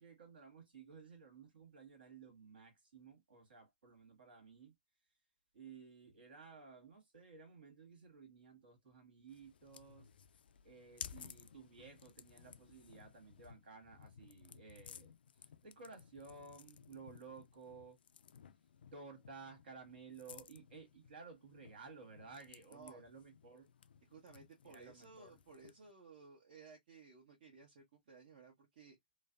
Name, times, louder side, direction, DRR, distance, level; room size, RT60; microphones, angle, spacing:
voice 1, 0.0-4.7 5.5-10.1 10.6-15.1 15.6-18.0 18.9-23.7 24.6-25.4, right 4 dB, 65° right, 1.6 m, -56 dB
sound 1, 9.3-25.9, left 7 dB, 65° left, 0.3 m, -57 dB
voice 2, 22.7-23.0 24.0-29.0, right 4 dB, 50° right, 1.0 m, -58 dB
3.2 x 2.0 x 2.4 m
figure-of-eight pair, 125°, 6 cm